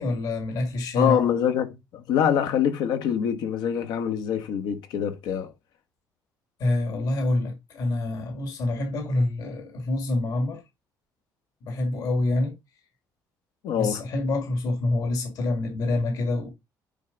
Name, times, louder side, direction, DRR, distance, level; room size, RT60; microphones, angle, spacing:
voice 1, 0.0-1.2 6.6-10.6 11.6-12.5 13.8-16.5, left 2 dB, 60° left, 1.9 m, -26 dB
voice 2, 0.9-5.5 13.6-14.0, left 9 dB, 85° left, 1.2 m, -25 dB
9.2 x 3.4 x 3.9 m
cardioid pair, 145°, 7 cm